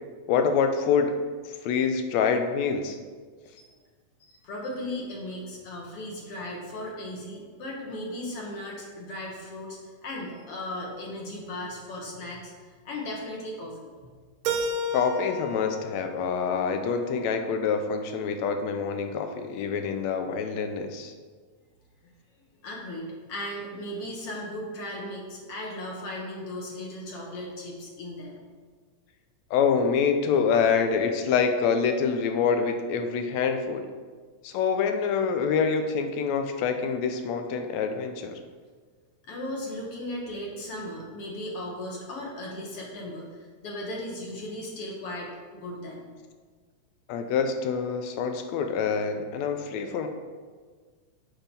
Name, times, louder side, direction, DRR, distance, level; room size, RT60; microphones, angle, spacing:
voice 1, 0.3-1.1 1.6-3.0 14.9-21.1 29.5-33.9 34.4-38.4 47.1-50.1, left 6 dB, 75° left, 6 dB, 1.9 m, -26 dB
voice 2, 4.2-12.5 12.8-13.9 22.0-22.1 22.6-28.4 39.3-46.1, left 1 dB, 60° left, -1 dB, 1.9 m, -37 dB
Keyboard (musical), 14.5-17.4, right 1 dB, 75° right, 2.1 m, -33 dB
7.1 x 5.7 x 5.3 m, 1.5 s
omnidirectional pair, 3.3 m